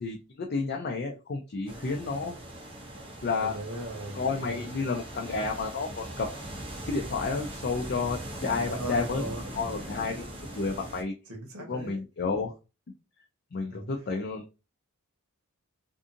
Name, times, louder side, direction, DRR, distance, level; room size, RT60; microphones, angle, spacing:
voice 1, 0.0-2.3 3.2-3.5 4.1-6.3 6.9-9.2 9.5-10.3 10.6-11.1 11.7-12.5 13.5-14.4, left 4 dB, 45° left, 1 dB, 0.4 m, -31 dB
sound 1, 1.7-11.0, right 1 dB, 25° right, 0.6 m, -40 dB
voice 2, 3.4-4.6 8.6-9.7 11.3-12.0 13.7-13.9, right 1 dB, 70° right, 1 dB, 1.0 m, -38 dB
2.6 x 2.5 x 2.5 m, 0.29 s
head